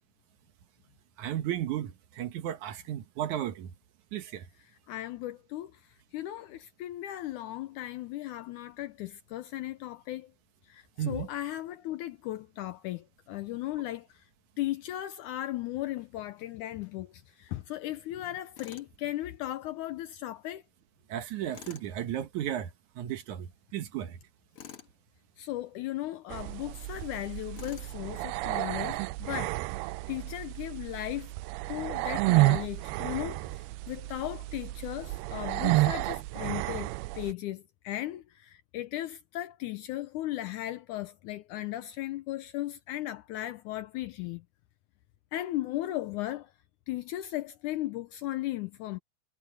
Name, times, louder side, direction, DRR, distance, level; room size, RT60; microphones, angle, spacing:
voice 1, 1.2-3.7 4.1-4.4 11.0-11.3 21.1-22.7 23.0-23.5 23.7-24.2, right 11 dB, 65° right, 2.1 m, -34 dB
voice 2, 4.9-5.7 6.1-10.3 10.7-14.1 14.6-17.1 17.4-20.6 25.4-29.6 30.1-31.3 31.7-44.4 45.3-46.5 46.9-49.0, left 15 dB, 90° left, 1.7 m, -36 dB
Tools, 18.6-18.9 21.5-21.9 24.5-24.9 27.5-28.0, left 9 dB, 55° left, 1.8 m, -47 dB
sound 1, 26.3-37.3, right 21 dB, 90° right, 2.5 m, -31 dB
omnidirectional pair, 4.4 m